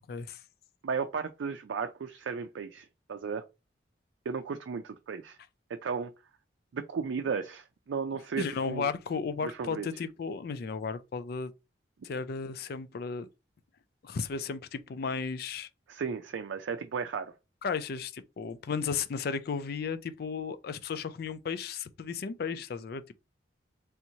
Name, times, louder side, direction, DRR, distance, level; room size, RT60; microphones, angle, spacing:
voice 1, 0.1-0.4 8.4-11.5 12.0-13.3 14.0-15.7 17.6-23.0, left 5 dB, 55° left, 0.4 m, -34 dB
voice 2, 0.8-3.4 4.3-5.4 5.7-6.1 6.7-8.9 9.4-9.9 15.9-17.3, right 5 dB, 90° right, 0.4 m, -35 dB
3.4 x 2.9 x 2.7 m
head